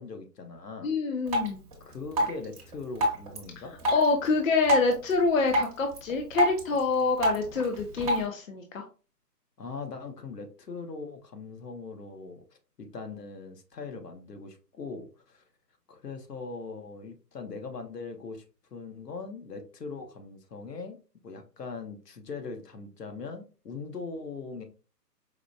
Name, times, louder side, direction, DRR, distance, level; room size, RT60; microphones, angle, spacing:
voice 1, 0.0-1.0 1.8-3.8 9.6-15.4 15.9-18.4 18.7-21.0 21.2-24.6, left 4 dB, 70° left, 5 dB, 1.1 m, -40 dB
voice 2, 0.8-1.6 3.9-8.8, left 4 dB, 55° left, 4 dB, 0.7 m, -26 dB
Drip, 1.3-8.3, equal, 25° right, 0.8 m, -31 dB
4.8 x 2.2 x 2.6 m, 0.34 s
figure-of-eight pair, 145°, 50 cm